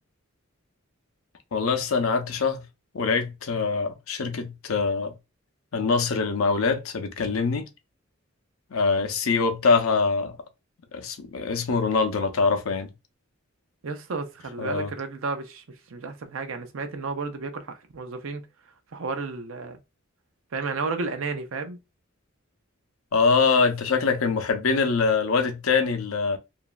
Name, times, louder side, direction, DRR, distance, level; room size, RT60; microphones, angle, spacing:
voice 1, 1.5-2.6 2.9-5.1 5.7-7.7 8.7-10.4 10.9-12.9 14.6-14.9 23.1-26.4, left 4 dB, 85° left, 0.6 m, -24 dB
voice 2, 13.8-15.6 15.9-18.4 18.9-19.8 20.5-21.8, right 4 dB, 75° right, 0.5 m, -32 dB
3.0 x 2.5 x 2.3 m
head